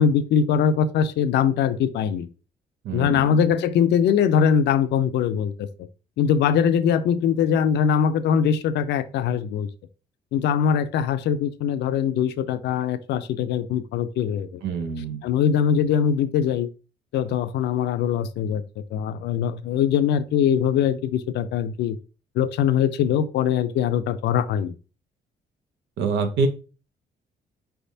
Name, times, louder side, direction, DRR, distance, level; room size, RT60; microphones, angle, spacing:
voice 1, 0.0-2.3 2.9-5.7 6.2-9.7 10.3-14.6 15.2-16.7 17.1-18.6 18.9-22.0 22.4-24.7, left 8 dB, 80° left, 11 dB, 0.5 m, -22 dB
voice 2, 2.8-3.4 14.6-15.3 26.0-26.5, right 4 dB, 85° right, 6 dB, 0.8 m, -26 dB
4.7 x 3.4 x 2.7 m, 0.34 s
cardioid pair, 95°, 18 cm